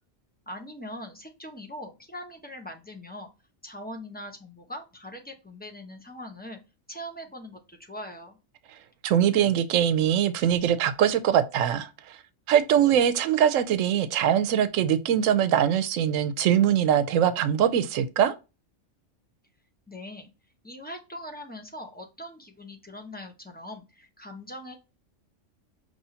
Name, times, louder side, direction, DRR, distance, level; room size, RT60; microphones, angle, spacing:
voice 1, 0.5-3.3 3.6-6.6 6.9-8.4 19.9-20.3 20.6-24.8, left 1 dB, 10° left, 0.8 m, -41 dB
voice 2, 9.0-12.2 12.5-18.3, right 9 dB, 85° right, 1.0 m, -22 dB
5.5 x 3.0 x 2.8 m
omnidirectional pair, 1.3 m